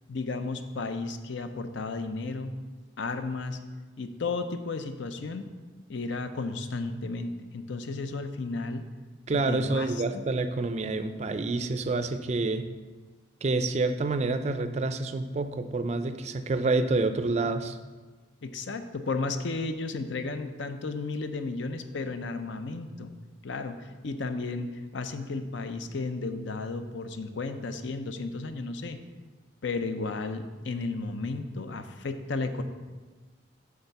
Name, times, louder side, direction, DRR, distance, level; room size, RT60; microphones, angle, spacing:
voice 1, 0.1-2.5 3.0-3.6 4.0-5.5 5.9-8.8 9.3-10.2 18.4-23.1 23.4-29.0 29.6-32.6, left 3 dB, 70° left, 8 dB, 0.6 m, -33 dB
voice 2, 9.3-12.7 13.4-17.8, right 3 dB, 35° right, 10 dB, 0.4 m, -28 dB
8.7 x 3.5 x 6.8 m, 1.3 s
head